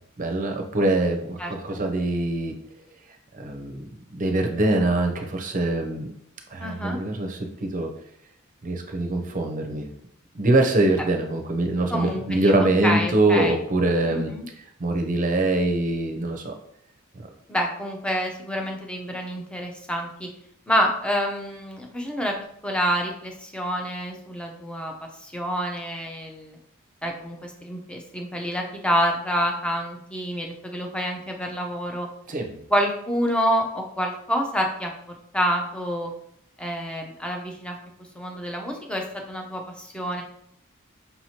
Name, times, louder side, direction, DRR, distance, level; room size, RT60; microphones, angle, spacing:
voice 1, 0.2-2.6 3.4-6.1 6.5-7.9 8.6-9.9 10.3-14.3 14.8-16.5 32.3-32.6, right 2 dB, 40° right, 4 dB, 0.6 m, -23 dB
voice 2, 1.4-1.8 6.6-7.0 11.9-13.6 14.0-14.5 17.5-20.3 20.7-22.4 22.6-26.6 27.0-32.1 32.7-34.9 35.3-36.1 36.6-37.8 38.2-40.2, equal, 5° left, 2 dB, 0.5 m, -27 dB
5.6 x 2.9 x 2.8 m, 0.72 s
head